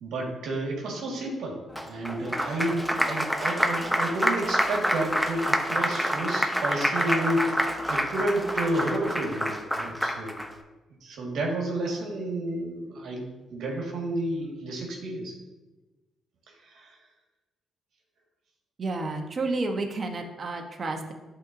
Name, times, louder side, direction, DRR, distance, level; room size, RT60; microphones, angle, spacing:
voice 1, 0.0-1.6 1.8-10.4 11.0-13.2 13.5-15.3 16.7-16.9, right 1 dB, 75° right, -1 dB, 1.7 m, -31 dB
Applause, 1.8-10.5, equal, ahead, 0.7 m, -27 dB
voice 2, 18.8-21.1, right 3 dB, 40° right, 4 dB, 1.0 m, -30 dB
11.5 x 4.0 x 2.7 m, 1.1 s
cardioid pair, 90°, 0 cm